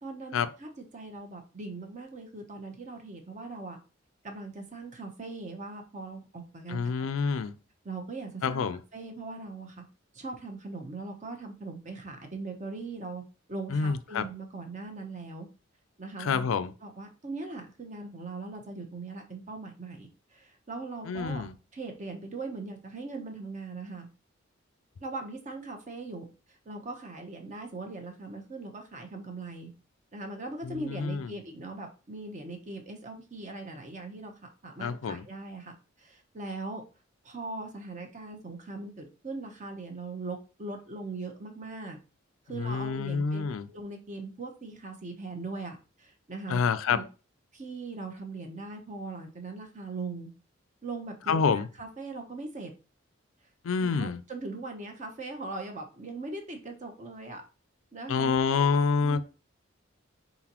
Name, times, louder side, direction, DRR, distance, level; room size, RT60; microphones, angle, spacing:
voice 1, 0.0-3.8 4.2-7.4 7.8-8.6 8.9-9.8 10.1-13.2 13.5-15.5 16.0-16.5 16.8-21.4 21.7-24.1 25.0-29.7 30.1-34.3 34.6-36.8 37.2-42.0 42.5-46.6 46.9-47.0 47.5-50.3 50.8-52.7 53.8-57.4 57.9-58.3 59.0-59.2, right 3 dB, 35° right, 0.8 m, -40 dB
voice 2, 6.7-7.6 8.4-8.8 13.7-14.3 16.2-16.7 21.1-21.6 30.6-31.4 34.8-35.3 42.5-43.7 46.5-47.0 51.3-51.7 53.6-54.2 58.1-59.2, left 5 dB, 85° left, 0.4 m, -27 dB
4.0 x 3.9 x 2.9 m
head